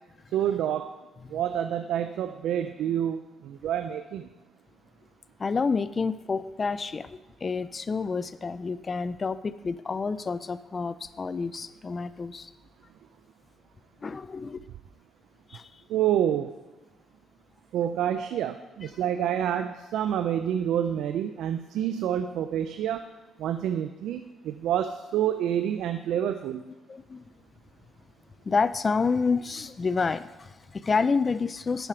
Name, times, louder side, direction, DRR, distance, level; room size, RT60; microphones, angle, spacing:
voice 1, 0.3-1.0 1.3-4.3 15.9-16.5 17.7-23.1 23.4-26.6, right 10 dB, 80° right, 0.4 m, -28 dB
voice 2, 5.4-12.5 14.0-14.6 15.5-15.7 26.9-27.3 28.5-31.9, left 4 dB, 35° left, 0.3 m, -29 dB
11.0 x 4.9 x 5.8 m
cardioid pair, 90°, 0 cm